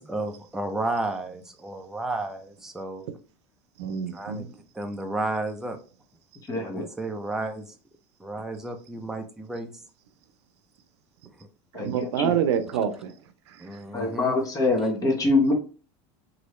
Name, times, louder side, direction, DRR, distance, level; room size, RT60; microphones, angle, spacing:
voice 1, 0.0-3.0 4.1-5.8 6.6-7.6 8.2-9.7 13.6-14.4, right 2 dB, 5° right, 0.5 m, -32 dB
voice 2, 3.8-4.5 11.7-13.1 13.5-13.8, right 8 dB, 85° right, 0.6 m, -27 dB
voice 3, 6.5-6.9 11.7-12.3 13.9-15.5, left 2 dB, 25° left, 1.0 m, -24 dB
3.0 x 2.7 x 3.0 m
supercardioid pair, 120°, 14 cm